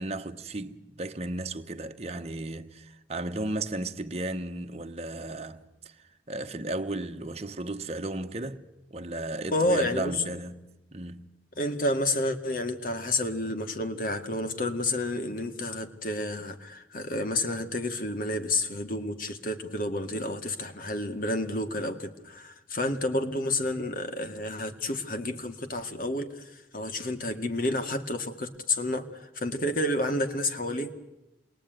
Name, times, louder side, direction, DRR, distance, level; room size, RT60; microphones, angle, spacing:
voice 1, 0.0-8.6 8.9-11.3, right 2 dB, 35° right, 1.3 m, -35 dB
voice 2, 9.5-10.2 11.6-30.9, left 1 dB, 50° left, 2.1 m, -30 dB
28.0 x 21.5 x 9.3 m
head